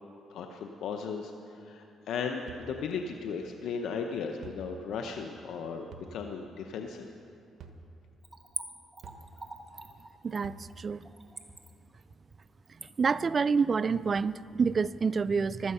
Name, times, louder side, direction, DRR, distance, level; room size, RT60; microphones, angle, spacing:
voice 1, 0.3-7.1, left 5 dB, 80° left, 4 dB, 0.8 m, -36 dB
sound 1, 2.5-2.7 4.4-4.7 5.9-6.1 7.6-7.8 9.0-9.3 10.4-10.7, right 5 dB, 70° right, 1.2 m, -47 dB
Splash splatter / Trickle dribble, 8.2-14.7 15.0-15.1, right 3 dB, 25° right, 1.3 m, -44 dB
voice 2, 10.2-11.0 12.8-15.7, right 5 dB, 40° right, 17 dB, 0.3 m, -28 dB
16.0 x 12.0 x 5.6 m, 2.7 s
cardioid pair, 90°, 0 cm